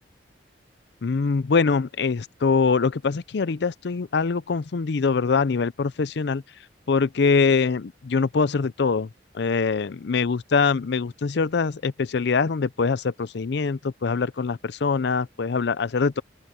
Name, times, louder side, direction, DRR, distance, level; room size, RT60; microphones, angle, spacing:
voice 1, 1.0-6.4 6.9-9.1 9.3-16.2, left 5 dB, 65° left, 0.5 m, -23 dB
open air
head